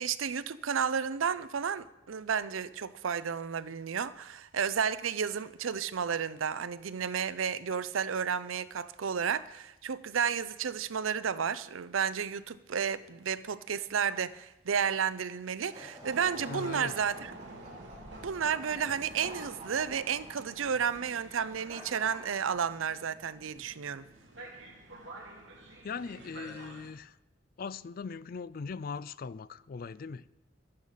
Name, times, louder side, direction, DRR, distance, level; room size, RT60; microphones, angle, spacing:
voice 1, 0.0-17.4 18.2-24.1, right 7 dB, 90° right, 0.5 m, -32 dB
sound 1, 15.6-23.1, right 1 dB, 35° right, 3.9 m, -50 dB
sound 2, 16.0-26.9, right 2 dB, 65° right, 2.4 m, -48 dB
voice 2, 16.4-16.9 25.8-27.1 27.6-30.3, left 5 dB, 50° left, 0.4 m, -40 dB
12.5 x 9.5 x 5.7 m
head